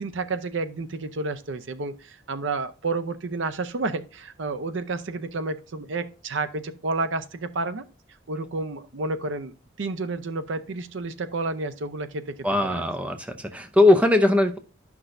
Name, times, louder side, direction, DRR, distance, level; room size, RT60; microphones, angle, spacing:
voice 1, 0.0-7.8 8.3-12.4 12.6-12.8, right 3 dB, 65° right, 0.6 m, -30 dB
voice 2, 12.4-14.6, left 2 dB, 5° right, 0.6 m, -20 dB
11.5 x 6.1 x 2.6 m
head